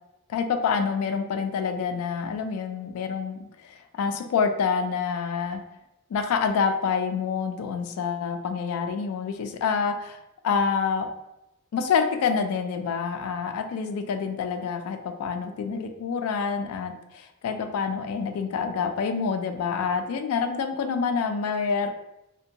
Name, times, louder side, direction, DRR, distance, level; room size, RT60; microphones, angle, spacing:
voice 1, 0.3-5.6 6.1-11.1 11.7-21.9, left 6 dB, 80° left, 7 dB, 0.3 m, -27 dB
2.6 x 2.2 x 2.7 m, 0.89 s
head